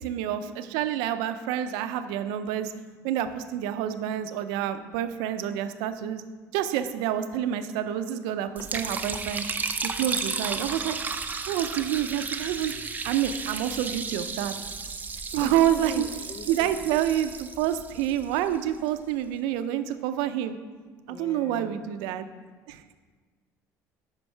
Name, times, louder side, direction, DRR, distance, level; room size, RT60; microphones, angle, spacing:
voice 1, 0.0-2.7 3.0-6.2 6.5-9.4 9.8-11.0 11.5-12.7 13.0-14.5 15.3-16.0 16.5-20.6 21.1-22.3 22.7-22.9, right 11 dB, 80° right, 10 dB, 0.5 m, -28 dB
voice 2, 8.6-8.9 15.4-16.8 21.1-21.9, left 3 dB, 40° left, 8 dB, 0.8 m, -40 dB
Liquid, 8.6-18.8, right 4 dB, 25° right, 0.6 m, -34 dB
9.4 x 5.3 x 4.6 m, 1.4 s
supercardioid pair, 85°, 7 cm